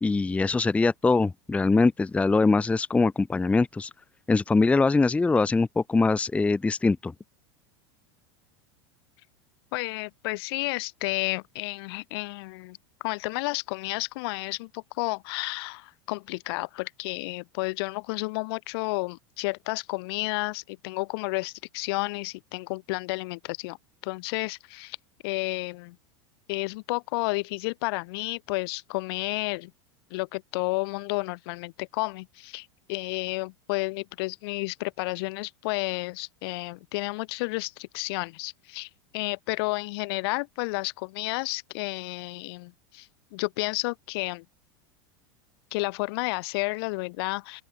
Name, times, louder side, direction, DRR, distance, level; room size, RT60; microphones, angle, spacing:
voice 1, 0.0-3.9 4.3-7.1, left 3 dB, 10° left, 0.6 m, -22 dB
voice 2, 9.7-23.8 24.0-25.0 25.2-26.0 26.5-29.7 30.1-44.4 45.7-47.6, left 25 dB, 65° left, 2.6 m, -31 dB
open air
supercardioid pair, 115°, 14 cm